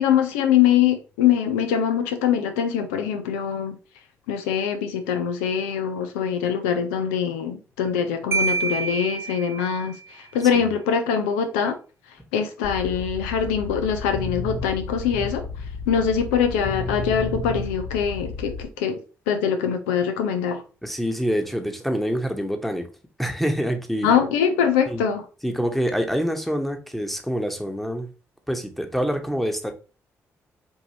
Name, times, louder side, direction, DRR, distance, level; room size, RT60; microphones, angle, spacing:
voice 1, 0.0-3.8 4.3-11.8 12.3-15.5 15.9-19.0 19.3-20.6 24.0-25.2, left 8 dB, 90° left, 0.4 m, -23 dB
Marimba xylophone, 8.3-10.0, right 4 dB, 40° right, 0.4 m, -27 dB
sound 1, 12.6-18.6, left 4 dB, 50° left, 0.7 m, -32 dB
voice 2, 20.8-22.9 23.2-24.1 24.9-25.0 25.4-28.1 28.5-29.7, equal, ahead, 1.0 m, -26 dB
4.6 x 2.6 x 2.7 m
hypercardioid pair, 45°, 7 cm